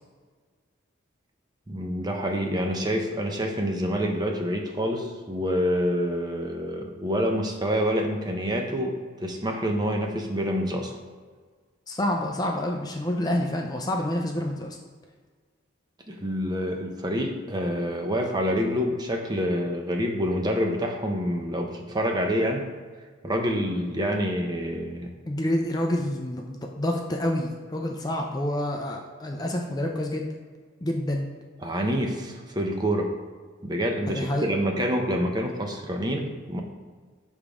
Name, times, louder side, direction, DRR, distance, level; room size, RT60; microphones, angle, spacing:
voice 1, 1.7-10.9 16.1-22.6 23.2-25.1 31.6-33.1 33.6-36.6, equal, 20° right, 2 dB, 0.6 m, -27 dB
voice 2, 11.9-14.8 25.3-30.3 30.8-31.3 34.1-34.5, left 1 dB, 20° left, 1 dB, 0.5 m, -28 dB
7.1 x 3.5 x 4.9 m, 1.5 s
head